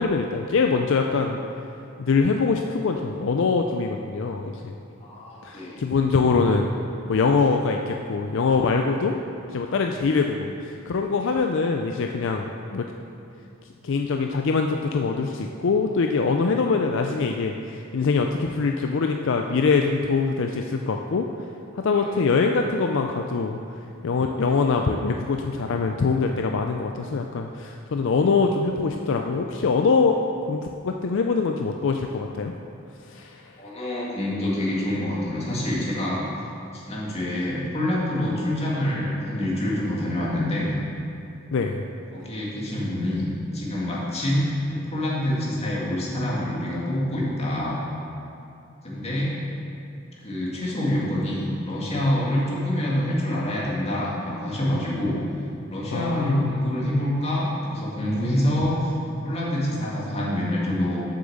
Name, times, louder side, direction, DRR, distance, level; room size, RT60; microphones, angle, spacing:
voice 1, 0.0-1.4 2.0-4.7 5.4-6.7 7.1-9.2 9.5-12.9 13.8-21.3 21.8-23.6 24.0-30.2 30.5-32.5 33.1-33.4 41.5-41.8 55.9-56.6, left 4 dB, 65° left, 3 dB, 0.4 m, -23 dB
voice 2, 5.0-5.8 21.9-22.2 33.6-36.4 36.7-40.7 42.1-43.3 43.5-47.8 48.8-49.3 50.2-55.2 55.7-59.0 59.2-61.0, left 1 dB, 30° left, -6 dB, 2.2 m, -26 dB
7.5 x 7.0 x 6.5 m, 2.6 s
head